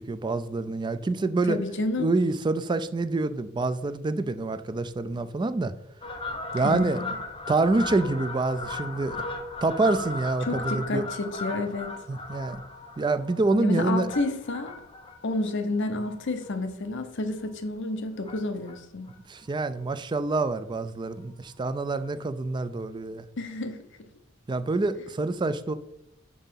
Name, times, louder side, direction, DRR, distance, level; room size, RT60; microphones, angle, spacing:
voice 1, 0.0-1.6 2.0-5.7 6.5-7.0 7.5-9.2 9.6-11.1 12.1-12.6 13.0-14.1 19.3-23.2 24.5-25.7, right 3 dB, 20° right, 12 dB, 0.3 m, -26 dB
voice 2, 1.5-2.1 6.6-7.1 10.4-11.9 13.6-14.7 15.2-19.1 23.4-23.8, left 2 dB, 60° left, 8 dB, 0.8 m, -30 dB
Fowl, 6.0-16.8 17.3-17.5 18.2-18.8 19.1-19.2 19.4-19.5 19.8-19.9 20.2-20.4 21.4-21.5 22.0-22.1, left 2 dB, 25° left, 0.8 m, -37 dB
5.4 x 4.9 x 5.7 m, 0.83 s
head